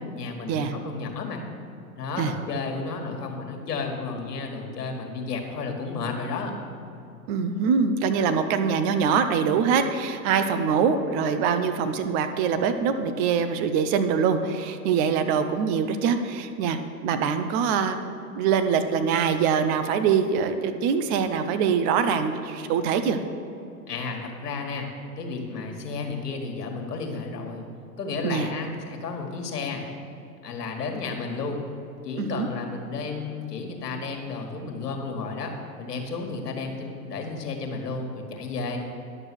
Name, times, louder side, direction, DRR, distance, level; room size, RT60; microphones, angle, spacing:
voice 1, 0.1-1.4 2.0-6.5 23.9-24.9 25.2-27.7 28.0-29.8 30.4-31.6 32.0-38.8, left 4 dB, 80° left, 2 dB, 1.9 m, -32 dB
voice 2, 7.3-18.0 18.4-23.2 28.2-28.5 32.2-32.5, right 6 dB, 20° right, 9 dB, 0.3 m, -24 dB
11.0 x 6.9 x 6.1 m, 2.7 s
hypercardioid pair, 110°, 47 cm